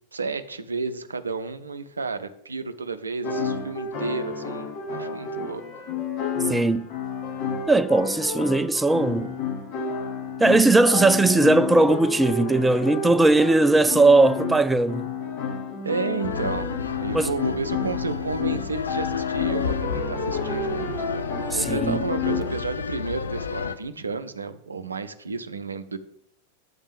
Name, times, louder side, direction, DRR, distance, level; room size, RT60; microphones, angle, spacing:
voice 1, 0.1-5.8 15.8-20.9 21.5-26.0, right 4 dB, 75° right, 0.5 m, -32 dB
sound 1, 3.2-22.6, left 5 dB, 45° left, 1.3 m, -30 dB
Wind instrument woodwind instrument, 3.6-6.6 7.1-10.4, equal, 30° left, 1.6 m, -46 dB
voice 2, 6.5-6.9 7.7-9.4 10.4-15.1 17.1-17.3 21.5-22.0, right 2 dB, 10° right, 0.4 m, -19 dB
sound 2, 16.2-23.8, left 5 dB, 70° left, 0.4 m, -32 dB
8.0 x 3.6 x 6.6 m
figure-of-eight pair, 90°, 0 cm